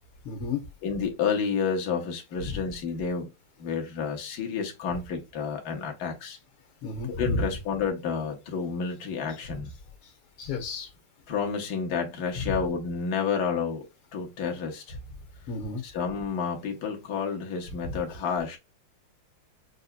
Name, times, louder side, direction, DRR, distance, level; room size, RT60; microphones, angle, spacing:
voice 1, 0.3-0.6 6.8-7.4 10.4-10.9 12.4-12.5 15.5-15.8 17.9-18.0, left 3 dB, 90° left, 1.9 m, -31 dB
voice 2, 0.8-3.3 3.6-6.4 7.1-9.7 11.3-13.8 14.1-15.0 15.8-18.6, left 6 dB, 55° left, 1.4 m, -30 dB
5.7 x 2.7 x 2.3 m
omnidirectional pair, 2.3 m